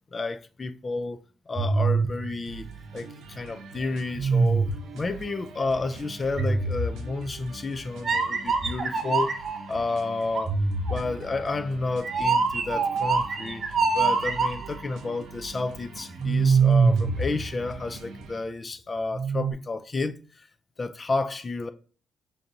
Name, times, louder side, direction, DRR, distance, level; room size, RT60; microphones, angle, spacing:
voice 1, 0.1-1.2 1.5-2.7 2.9-9.3 9.7-10.6 10.9-13.6 13.9-20.5 20.8-21.7, left 3 dB, 25° left, 0.3 m, -31 dB
sound 1, 1.6-3.4 4.1-5.1 6.4-7.4 8.0-9.7 10.3-14.9 16.2-18.0 19.1-19.5, right 4 dB, 35° right, 0.5 m, -24 dB
sound 2, 2.4-18.4, right 4 dB, 80° right, 0.7 m, -44 dB
5.7 x 2.6 x 2.6 m
cardioid pair, 145°, 0 cm